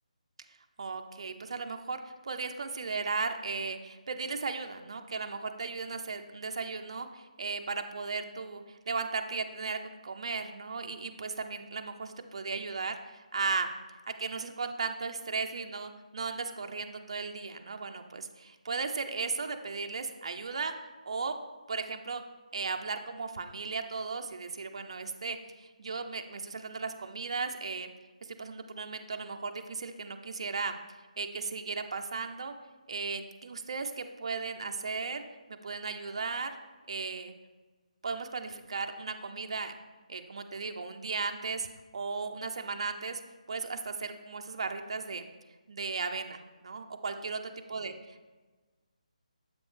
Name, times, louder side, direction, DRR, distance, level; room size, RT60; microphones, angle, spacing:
voice 1, 0.8-13.7 14.1-20.7 21.0-21.3 21.7-22.2 22.5-27.9 28.3-30.8 31.2-32.5 32.9-35.2 35.5-36.5 36.9-37.3 38.0-39.7 40.1-41.7 41.9-43.2 43.5-45.2 45.7-47.9, right 4 dB, 45° right, 6 dB, 0.5 m, -36 dB
7.6 x 5.1 x 3.2 m, 1.3 s
hypercardioid pair, 175°, 4 cm